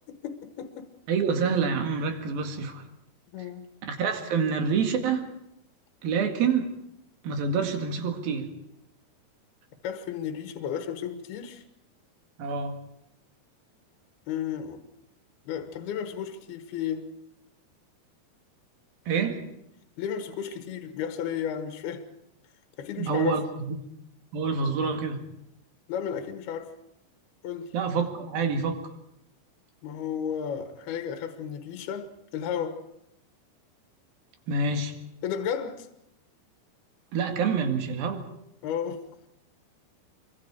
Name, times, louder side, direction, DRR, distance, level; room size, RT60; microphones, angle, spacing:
voice 1, 0.1-0.9 3.3-3.7 9.8-11.6 14.3-14.8 15.5-17.1 20.0-22.1 22.8-23.4 25.9-26.7 27.4-27.8 29.8-32.8 35.2-35.9 38.6-39.0, left 8 dB, 75° left, 3.3 m, -33 dB
voice 2, 1.1-2.8 3.8-5.3 6.0-6.7 7.2-8.5 12.4-12.8 19.1-19.4 23.0-23.4 23.7-23.8 24.3-25.2 27.7-28.8 34.5-35.0 37.1-38.3, right 5 dB, 65° right, 3.8 m, -27 dB
26.5 x 23.5 x 4.9 m
omnidirectional pair, 4.7 m